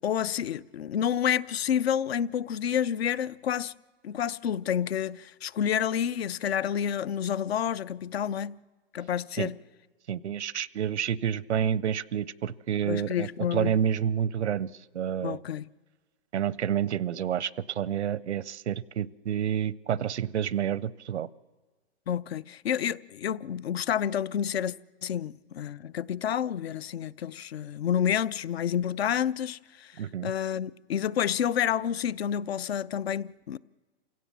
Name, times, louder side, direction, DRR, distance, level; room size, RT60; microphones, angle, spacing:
voice 1, 0.0-3.7 4.0-8.6 8.9-9.6 12.8-13.7 15.2-15.7 22.1-24.7 25.0-33.6, left 9 dB, 65° left, 0.6 m, -29 dB
voice 2, 10.1-14.7 14.9-15.4 16.3-21.3 30.0-30.3, right 9 dB, 90° right, 0.7 m, -29 dB
28.0 x 17.0 x 7.2 m
hypercardioid pair, 155°, 33 cm